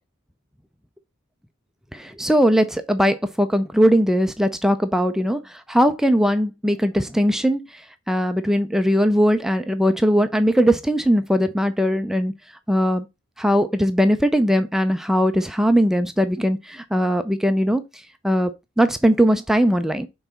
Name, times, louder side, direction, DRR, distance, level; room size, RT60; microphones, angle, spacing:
voice 1, 1.9-12.3 12.7-13.1 13.4-17.8 18.2-18.5 18.8-20.1, equal, ahead, 0.4 m, -19 dB
5.7 x 4.0 x 5.7 m
head